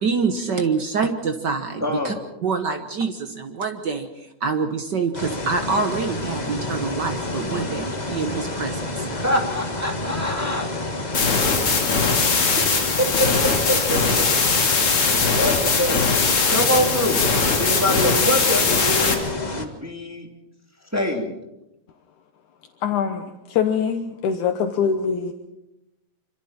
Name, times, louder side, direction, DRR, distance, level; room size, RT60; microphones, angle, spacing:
voice 1, 0.0-2.1 2.4-4.1 4.4-9.1, right 5 dB, 60° right, 6 dB, 1.1 m, -26 dB
voice 2, 1.8-2.2 7.5-7.7 9.1-10.7 11.2-12.1 12.6-13.3 13.7-14.0 15.3-16.0 16.5-17.2 17.6-19.2 19.6-20.3 20.9-21.4, left 1 dB, 5° right, 0 dB, 2.5 m, -25 dB
sound 1, 5.1-19.6, left 2 dB, 25° left, 0.9 m, -29 dB
sound 2, 11.1-19.1, left 4 dB, 45° left, 3.4 m, -20 dB
voice 3, 22.8-25.3, left 7 dB, 75° left, 6 dB, 2.5 m, -23 dB
26.5 x 26.0 x 4.4 m, 0.90 s
omnidirectional pair, 3.7 m